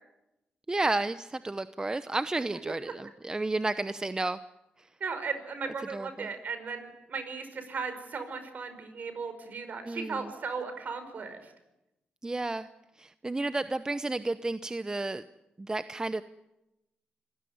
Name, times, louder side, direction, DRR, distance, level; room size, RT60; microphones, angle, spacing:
voice 1, 0.7-4.4 4.8-4.9 5.9-6.3 9.8-10.3 12.2-12.7 13.0-15.2 15.6-16.2, right 2 dB, 20° right, 12 dB, 0.9 m, -32 dB
voice 2, 5.0-11.5, right 5 dB, 55° right, 9 dB, 5.2 m, -36 dB
26.0 x 16.5 x 9.5 m, 0.94 s
cardioid pair, 65°, 3 cm